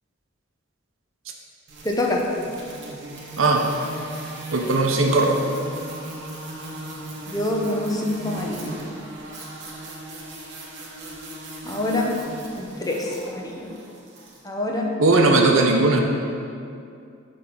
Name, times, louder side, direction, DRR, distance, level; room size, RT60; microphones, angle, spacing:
sound 1, 1.7-14.4, right 2 dB, 60° right, 1.2 m, -38 dB
voice 1, 1.8-2.2 7.3-8.8 11.6-12.1 12.5-13.7 14.4-14.9, left 1 dB, 20° left, -1 dB, 0.8 m, -26 dB
voice 2, 3.4-3.7 4.5-5.4 15.0-16.0, right 2 dB, 80° right, 2 dB, 0.8 m, -18 dB
7.6 x 3.4 x 6.0 m, 2.4 s
head